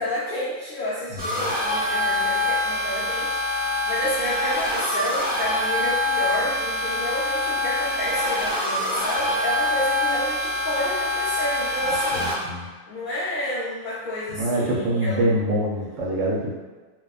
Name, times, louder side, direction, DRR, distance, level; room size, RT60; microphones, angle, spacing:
voice 1, 0.0-15.2, equal, 80° left, -7 dB, 0.4 m, -30 dB
voice 2, 1.1-1.5 12.1-12.6 14.3-16.6, right 1 dB, 70° right, -4 dB, 0.9 m, -25 dB
sound 1, 1.2-12.3, left 1 dB, 15° right, 0.3 m, -25 dB
2.8 x 2.2 x 2.3 m, 1.3 s
omnidirectional pair, 1.4 m